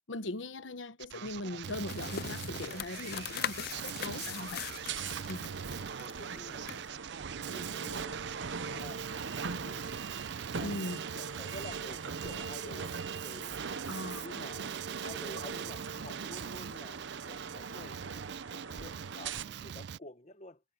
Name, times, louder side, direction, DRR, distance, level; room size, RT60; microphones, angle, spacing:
voice 1, 0.1-4.6 5.3-5.5 10.6-11.0 13.9-14.5, left 2 dB, 85° left, 1.1 m, -40 dB
Male speech man speaking, 1.0-20.0, right 9 dB, 60° right, 0.4 m, -43 dB
sound 1, 1.9-6.9, left 9 dB, 55° left, 0.4 m, -41 dB
voice 2, 3.6-4.4 5.6-8.2 8.5-9.9 10.5-10.9 11.1-13.6 14.2-20.6, left 2 dB, 40° left, 1.3 m, -50 dB
sound 2, 3.7-19.4, right 5 dB, 80° right, 0.9 m, -41 dB
head